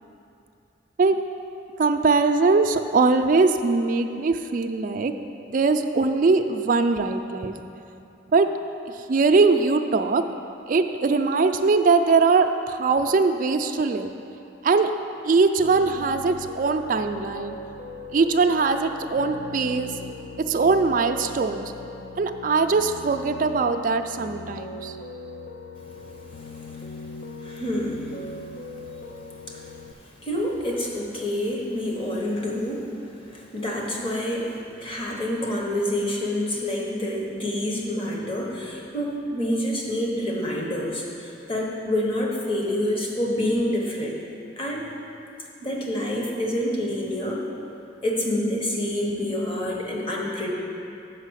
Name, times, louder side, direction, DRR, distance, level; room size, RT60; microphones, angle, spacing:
voice 1, 1.8-5.1 5.5-7.5 8.3-8.5 9.1-10.2 10.7-14.1 14.6-14.9 15.2-17.6 18.1-19.9 20.4-21.7 22.2-24.9, right 4 dB, 45° right, 6 dB, 0.4 m, -21 dB
Piano, 15.6-29.9, left 3 dB, 45° left, 0.3 m, -40 dB
voice 2, 25.8-44.2 44.6-44.9 45.6-47.5 48.0-50.5, left 1 dB, 30° left, -2 dB, 1.1 m, -28 dB
7.4 x 5.7 x 6.3 m, 2.7 s
head